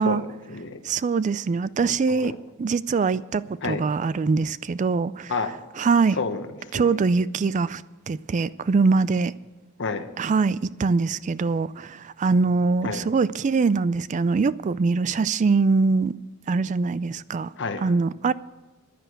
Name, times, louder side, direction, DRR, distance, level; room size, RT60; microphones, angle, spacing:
voice 1, 0.0-0.8 2.1-2.4 3.6-3.8 5.3-5.6 6.1-6.9 9.8-10.1 12.8-13.1 17.6-17.9, left 4 dB, 60° left, 1.1 m, -30 dB
voice 2, 0.8-2.3 2.6-5.3 5.8-6.2 6.7-7.8 8.1-9.3 10.2-16.1 16.5-17.5 17.8-18.3, right 4 dB, 35° right, 0.3 m, -23 dB
10.5 x 10.0 x 7.9 m
head